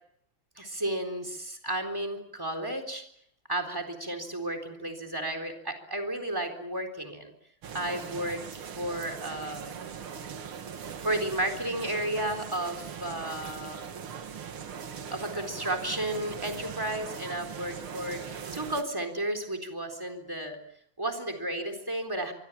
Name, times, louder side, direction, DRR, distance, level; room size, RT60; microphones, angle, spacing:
voice 1, 0.6-3.0 3.5-7.3 7.7-8.4 8.8-9.8 11.0-13.8 15.1-20.6 21.0-22.3, right 1 dB, 10° right, 3 dB, 3.9 m, -33 dB
sound 1, 7.6-18.8, right 7 dB, 85° right, 2.5 m, -40 dB
24.5 x 24.5 x 7.4 m, 0.74 s
omnidirectional pair, 2.3 m